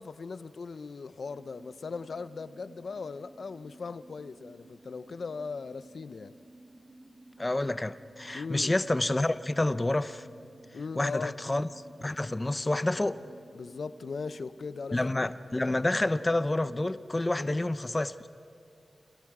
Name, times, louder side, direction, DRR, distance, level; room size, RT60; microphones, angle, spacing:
voice 1, 0.0-6.3 8.3-8.7 10.7-11.4 13.5-15.0 17.4-17.6, left 4 dB, 70° left, 0.6 m, -38 dB
sound 1, 1.2-16.9, right 2 dB, 30° right, 5.6 m, -55 dB
voice 2, 7.4-10.3 11.0-11.7 12.0-13.2 14.9-18.3, left 2 dB, 25° left, 0.6 m, -28 dB
28.5 x 27.5 x 4.9 m
wide cardioid pair, 95°, 0 cm